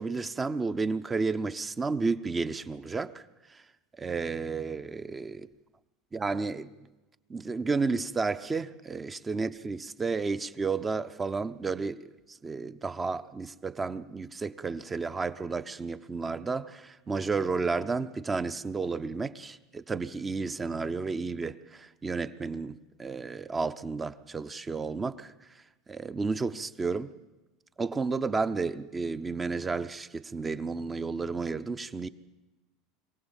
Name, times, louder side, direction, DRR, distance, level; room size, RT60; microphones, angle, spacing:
voice 1, 0.0-3.2 3.5-3.6 4.0-5.4 6.1-6.7 7.3-25.3 25.9-27.1 27.8-32.1, right 4 dB, 15° right, 0.7 m, -32 dB
23.5 x 17.0 x 7.2 m
supercardioid pair, 130°, 0 cm